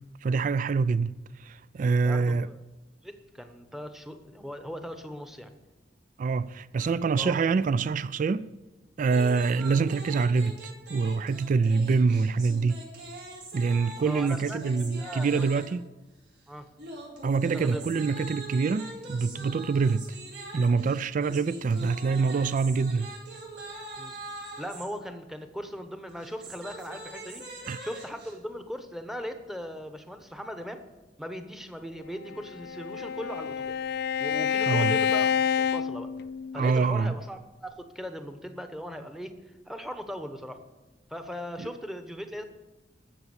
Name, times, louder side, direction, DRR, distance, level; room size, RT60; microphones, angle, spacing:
voice 1, 0.2-2.5 6.2-8.5 9.0-10.6 10.9-12.8 13.5-15.8 17.2-20.2 20.5-23.1 27.7-27.8 34.7-35.0 36.5-37.1 41.6-41.7, right 4 dB, 45° right, 0.3 m, -25 dB
voice 2, 1.9-2.6 3.0-5.5 6.8-7.4 14.0-14.6 15.0-15.5 16.5-16.7 17.5-17.9 24.0-24.1 24.6-30.8 31.2-33.8 34.2-36.1 36.5-39.4 39.7-40.6 41.1-42.4, equal, ahead, 1.0 m, -39 dB
sound 1, 9.0-15.8 16.8-24.9 26.1-28.3, right 2 dB, 75° right, 4.3 m, -42 dB
Bowed string instrument, 32.3-36.7, left 7 dB, 60° left, 0.3 m, -28 dB
12.5 x 6.9 x 7.9 m
head